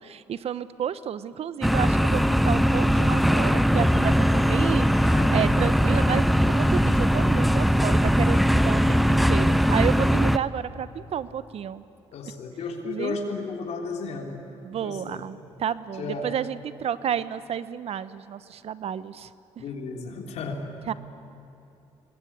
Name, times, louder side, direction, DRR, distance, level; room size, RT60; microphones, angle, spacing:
voice 1, 0.0-11.8 12.2-12.3 12.8-13.2 14.6-19.3 19.6-19.7 20.9-21.0, right 9 dB, 65° right, 15 dB, 0.8 m, -31 dB
sound 1, 1.6-10.4, equal, ahead, 0.6 m, -20 dB
voice 2, 5.1-5.5 12.1-14.4 14.8-15.2 16.0-16.3 19.6-20.6, left 4 dB, 75° left, 2 dB, 3.3 m, -33 dB
23.5 x 20.5 x 8.7 m, 2.7 s
cardioid pair, 70°, 12 cm